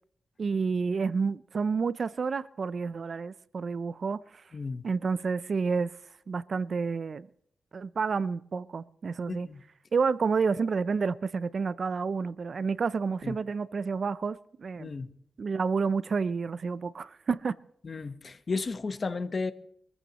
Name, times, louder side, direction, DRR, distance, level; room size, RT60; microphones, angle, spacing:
voice 1, 0.4-4.4 4.8-6.0 6.3-7.3 7.7-9.5 9.9-14.9 15.4-17.6, right 5 dB, 55° right, 0.5 m, -29 dB
voice 2, 4.5-4.9 9.3-9.6 13.2-13.4 14.8-15.1 17.8-19.5, left 4 dB, 45° left, 1.1 m, -33 dB
23.5 x 15.0 x 3.0 m
cardioid pair, 95°, 0 cm